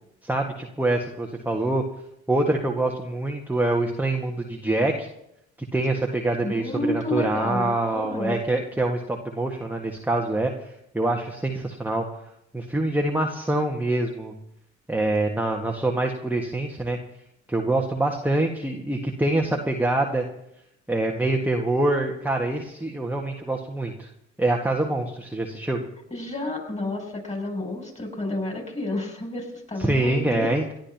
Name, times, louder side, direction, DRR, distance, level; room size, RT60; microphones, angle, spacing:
voice 1, 0.2-1.8 2.3-5.1 5.7-12.0 12.5-14.3 14.9-17.0 17.5-20.2 20.9-24.1 24.4-25.8 29.8-30.7, right 2 dB, 5° right, 1 dB, 1.7 m, -25 dB
voice 2, 6.4-8.4 26.1-30.5, left 2 dB, 20° left, 1 dB, 6.9 m, -30 dB
28.5 x 12.0 x 2.9 m, 0.81 s
figure-of-eight pair, 45°, 35 cm